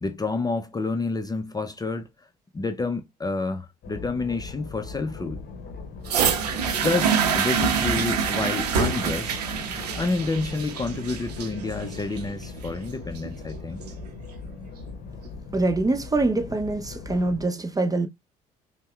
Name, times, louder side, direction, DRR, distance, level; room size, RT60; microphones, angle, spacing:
voice 1, 0.0-2.1 2.5-5.4 6.8-9.4 10.0-13.8, left 3 dB, 20° left, 0.5 m, -29 dB
sound 1, 3.8-17.5, left 4 dB, 55° left, 0.8 m, -39 dB
sound 2, 6.1-14.1 14.9-15.0, right 7 dB, 90° right, 0.6 m, -26 dB
voice 2, 15.5-18.1, right 2 dB, 20° right, 0.7 m, -24 dB
5.4 x 2.1 x 2.3 m
hypercardioid pair, 55°, 20 cm